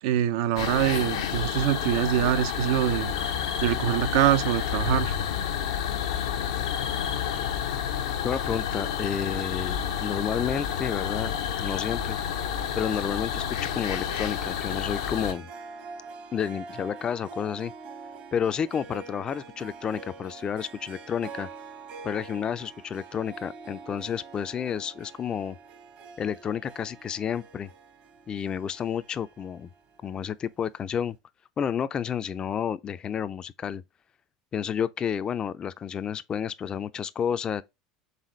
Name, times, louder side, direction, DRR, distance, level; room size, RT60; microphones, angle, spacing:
voice 1, 0.0-3.1 3.6-5.1, right 12 dB, 75° right, 0.4 m, -24 dB
sound 1, 0.6-15.3, left 8 dB, 90° left, 0.7 m, -30 dB
voice 2, 8.2-12.2 12.7-15.5 16.3-17.7 18.3-21.5 22.0-25.6 26.2-27.7 28.3-29.7 30.0-31.2 31.6-33.8 34.5-37.6, left 8 dB, 30° left, 0.3 m, -30 dB
Harp, 13.7-30.5, right 4 dB, 50° right, 1.0 m, -45 dB
4.1 x 3.6 x 3.1 m
supercardioid pair, 105°, 3 cm